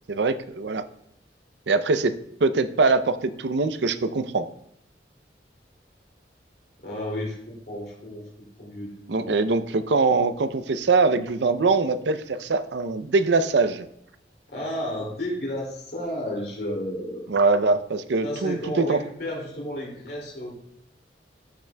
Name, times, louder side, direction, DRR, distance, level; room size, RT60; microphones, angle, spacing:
voice 1, 0.1-0.8 1.7-2.1 2.4-4.5 9.1-13.9 17.3-19.0, right 3 dB, 80° right, 11 dB, 0.5 m, -22 dB
voice 2, 6.8-8.2 8.6-8.9 9.2-9.4 14.5-17.3 18.2-20.6, left 1 dB, 60° left, -3 dB, 2.5 m, -32 dB
14.0 x 6.0 x 2.2 m, 0.73 s
head